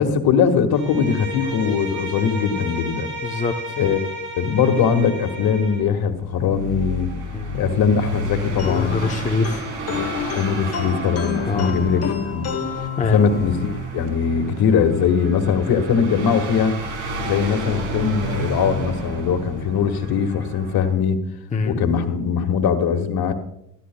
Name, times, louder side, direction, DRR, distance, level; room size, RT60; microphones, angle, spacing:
voice 1, 0.0-3.1 3.8-4.0 4.4-7.1 7.5-9.0 10.3-12.4 13.0-16.7 17.2-21.2 21.6-23.3, left 6 dB, 55° left, 7 dB, 1.8 m, -21 dB
Bowed string instrument, 0.7-5.9, equal, 25° right, 4.1 m, -32 dB
voice 2, 3.2-3.7 7.3-7.6 8.6-9.7 11.5-11.8 13.0-13.3 21.5-21.8, left 3 dB, 15° left, 4 dB, 0.8 m, -24 dB
sound 1, 5.8-20.9, right 2 dB, 85° right, 3.6 m, -31 dB
sound 2, 8.6-13.7, left 7 dB, 35° left, 1.1 m, -30 dB
16.5 x 13.0 x 2.3 m, 0.77 s
cardioid pair, 105°, 44 cm